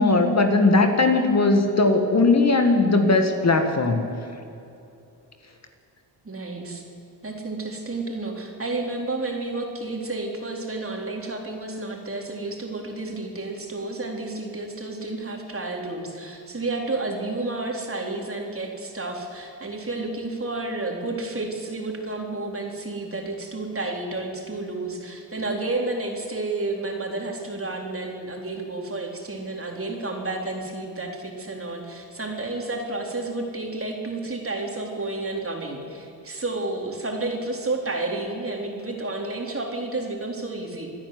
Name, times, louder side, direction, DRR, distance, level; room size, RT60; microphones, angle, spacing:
voice 1, 0.0-4.0, left 3 dB, 35° left, 5 dB, 2.0 m, -19 dB
voice 2, 6.2-6.8 7.2-40.9, right 2 dB, 30° right, 1 dB, 4.1 m, -31 dB
27.0 x 10.5 x 9.6 m, 2.7 s
cardioid pair, 75°, 44 cm